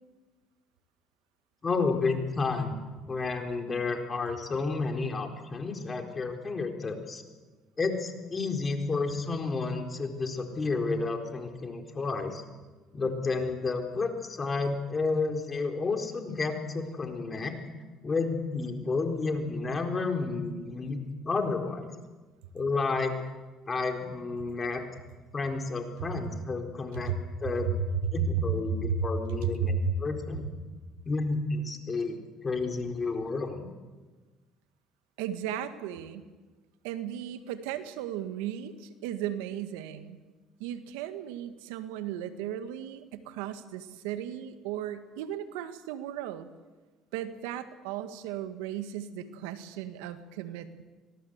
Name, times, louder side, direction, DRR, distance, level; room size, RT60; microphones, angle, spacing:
voice 1, 1.6-2.8 3.1-7.2 7.8-12.4 12.9-17.6 18.0-21.0 21.2-21.9 22.5-23.1 23.7-24.8 25.3-27.1 27.4-27.8 28.1-30.5 31.1-33.7, left 3 dB, 30° left, 5 dB, 4.1 m, -31 dB
voice 2, 27.6-29.1 29.4-29.9 35.2-36.3 36.8-40.2 40.6-46.5 47.1-50.8, right 7 dB, 90° right, 10 dB, 1.7 m, -34 dB
25.5 x 18.0 x 8.0 m, 1.3 s
supercardioid pair, 75°, 0 cm